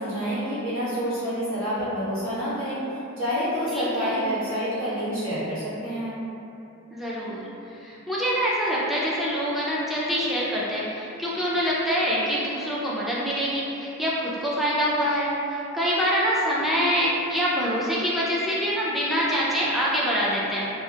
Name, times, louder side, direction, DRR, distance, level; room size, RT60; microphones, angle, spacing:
voice 1, 0.0-2.8 3.2-6.1, equal, 70° right, -13 dB, 1.3 m, -28 dB
voice 2, 3.7-4.2 6.9-20.7, equal, ahead, -7 dB, 0.4 m, -25 dB
2.7 x 2.4 x 2.3 m, 2.8 s
head